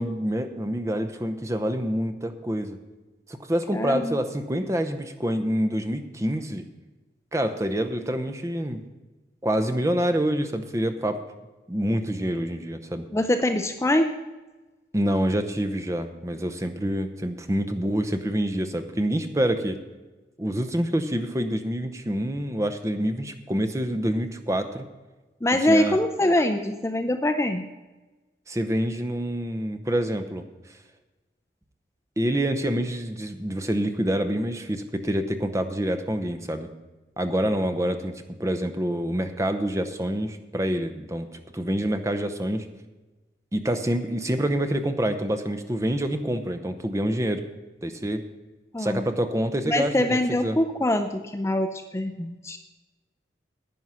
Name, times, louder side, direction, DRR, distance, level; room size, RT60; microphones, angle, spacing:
voice 1, 0.0-2.8 3.3-6.6 7.3-8.8 9.4-11.2 11.7-13.1 14.9-19.8 20.4-24.9 25.5-26.0 28.5-30.4 32.2-36.7 37.2-42.7 43.5-47.4 47.8-48.2 48.8-50.6, right 1 dB, 15° right, 7 dB, 0.7 m, -27 dB
voice 2, 3.7-4.2 13.1-14.1 25.4-27.7 48.7-49.0 49.7-52.6, left 1 dB, 15° left, 8 dB, 0.5 m, -24 dB
11.0 x 9.1 x 5.6 m, 1.2 s
head